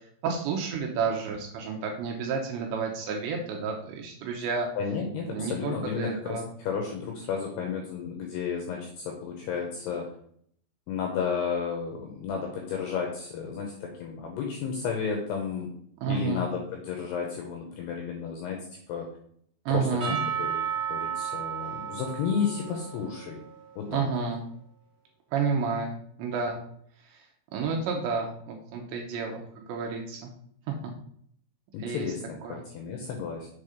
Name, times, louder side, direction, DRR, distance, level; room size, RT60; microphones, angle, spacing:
voice 1, 0.2-4.7 5.3-6.4 16.0-16.4 19.7-20.2 23.9-24.4 25.3-26.6 27.1-27.2 27.5-30.3 30.7-30.8 31.8-32.1 32.4-32.6, right 5 dB, 75° right, 2 dB, 2.9 m, -30 dB
voice 2, 4.8-10.1 10.9-15.7 16.1-19.1 19.7-20.6 20.9-23.4 23.8-24.1 31.7-33.5, left 6 dB, 80° left, 1 dB, 2.4 m, -32 dB
Percussion / Church bell, 20.0-23.9, right 8 dB, 45° right, 1.8 m, -33 dB
7.3 x 4.0 x 5.0 m, 0.65 s
omnidirectional pair, 5.8 m